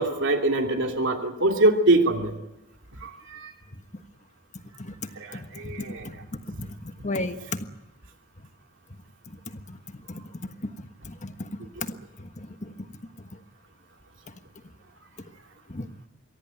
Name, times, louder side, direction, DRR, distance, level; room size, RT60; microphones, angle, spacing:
voice 1, 0.0-2.3 3.0-3.5 5.2-6.1, right 2 dB, 60° right, 4 dB, 2.7 m, -23 dB
voice 2, 5.3-7.6 9.3-12.7 13.2-13.3 15.7-15.9, left 2 dB, 35° left, 8 dB, 1.4 m, -36 dB
24.0 x 17.0 x 9.2 m, 1.0 s
head